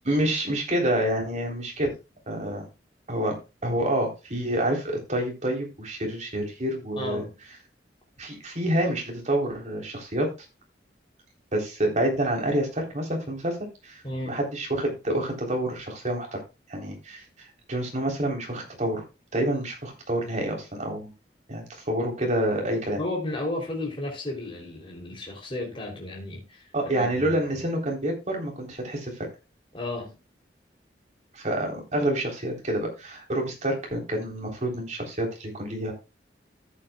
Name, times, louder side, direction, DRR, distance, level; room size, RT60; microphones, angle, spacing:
voice 1, 0.0-1.9 2.3-2.7 3.1-3.4 3.6-7.3 8.2-10.3 11.5-16.4 16.7-17.2 17.7-19.0 19.3-21.1 21.5-23.0 26.7-29.3 31.3-35.9, right 1 dB, 45° right, 0 dB, 3.6 m, -28 dB
voice 2, 7.0-7.3 14.0-14.4 23.0-27.5 29.7-30.1, left 2 dB, 30° left, -2 dB, 3.3 m, -33 dB
14.0 x 8.6 x 2.3 m, 0.27 s
head